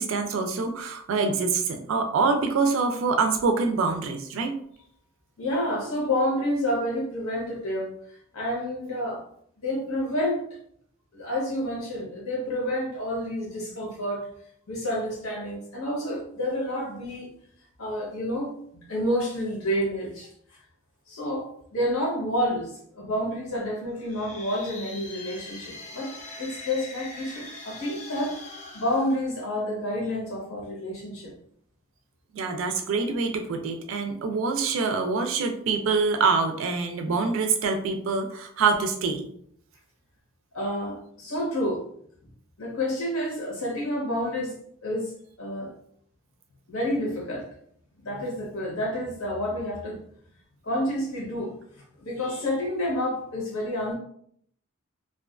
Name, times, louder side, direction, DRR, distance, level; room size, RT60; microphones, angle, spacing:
voice 1, 0.0-4.5 32.3-39.3, right 4 dB, 65° right, 5 dB, 0.3 m, -25 dB
voice 2, 5.4-7.9 8.3-9.2 9.6-10.4 11.1-14.3 14.7-17.3 17.8-20.3 21.1-28.4 28.7-31.3 40.5-41.8 42.6-45.1 45.4-45.7 46.7-47.5 48.0-50.0 50.6-51.5 52.0-54.0, left 1 dB, 85° left, -2 dB, 0.9 m, -29 dB
sound 1, 23.9-29.9, left 2 dB, 35° left, 0.4 m, -42 dB
2.4 x 2.2 x 2.3 m, 0.65 s
head